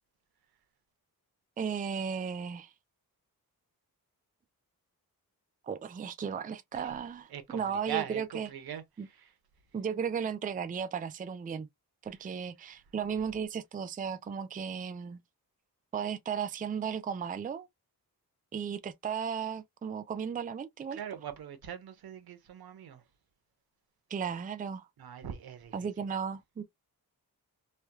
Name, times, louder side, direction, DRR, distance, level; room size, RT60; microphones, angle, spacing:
voice 1, 1.6-2.7 5.6-8.5 9.7-11.7 12.0-15.2 15.9-17.7 18.5-21.0 24.1-24.9 25.7-26.6, right 7 dB, 25° right, 0.4 m, -35 dB
voice 2, 7.3-9.4 12.1-12.2 12.6-12.9 20.9-23.1 25.0-26.1, right 10 dB, 85° right, 0.9 m, -42 dB
3.2 x 2.2 x 2.8 m
wide cardioid pair, 110°, 36 cm